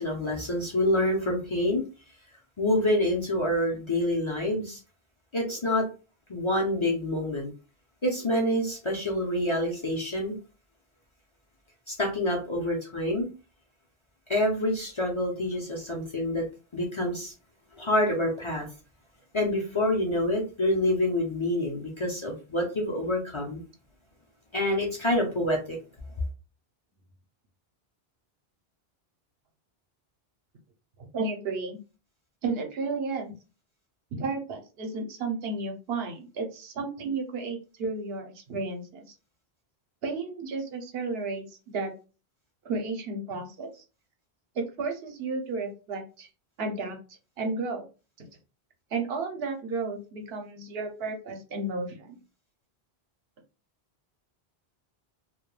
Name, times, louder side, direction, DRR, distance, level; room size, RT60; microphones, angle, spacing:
voice 1, 0.0-1.8 2.6-4.8 5.3-5.9 6.3-7.5 8.0-10.4 11.9-13.3 14.3-16.4 16.7-17.3 17.8-18.7 19.3-23.6 24.5-25.8, left 1 dB, 35° left, -1 dB, 0.5 m, -27 dB
voice 2, 31.1-31.8 32.4-33.3 34.1-39.1 40.0-41.9 42.6-43.8 44.6-46.3 46.6-47.0 47.4-47.9 48.2-48.3 48.9-52.2, right 3 dB, 75° right, 4 dB, 0.8 m, -33 dB
2.3 x 2.1 x 3.0 m, 0.33 s
omnidirectional pair, 1.0 m